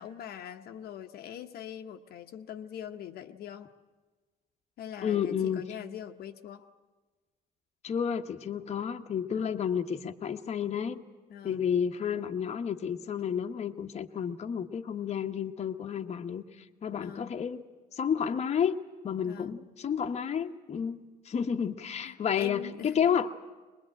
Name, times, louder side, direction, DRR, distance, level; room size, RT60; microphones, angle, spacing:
voice 1, 0.0-3.7 4.8-6.7 9.3-9.6 11.3-11.7 16.9-17.4 19.2-19.6 22.0-23.0, left 9 dB, 65° left, 5 dB, 1.0 m, -43 dB
voice 2, 5.0-5.6 7.8-11.0 11.4-17.6 17.9-18.8 19.0-21.0 21.2-23.3, left 8 dB, 40° left, 5 dB, 1.1 m, -31 dB
23.0 x 21.0 x 8.8 m, 1.3 s
cardioid pair, 110°, 17 cm